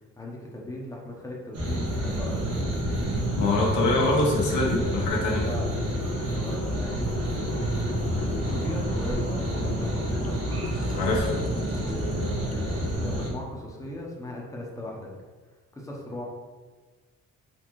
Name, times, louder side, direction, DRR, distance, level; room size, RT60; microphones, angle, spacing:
voice 1, 0.2-2.9 5.3-7.7 8.1-10.6 11.7-15.1 15.7-16.2, left 1 dB, 10° left, -3 dB, 0.9 m, -38 dB
sound 1, 1.5-13.3, equal, 55° right, 1.5 m, -29 dB
voice 2, 3.3-5.5 11.0-11.4, left 2 dB, 75° left, -3 dB, 1.2 m, -24 dB
sound 2, 3.4-3.5 3.8-12.9 13.3-13.4, left 4 dB, 25° left, 0.5 m, -41 dB
4.2 x 3.4 x 3.1 m, 1.3 s
cardioid pair, 90°, 30 cm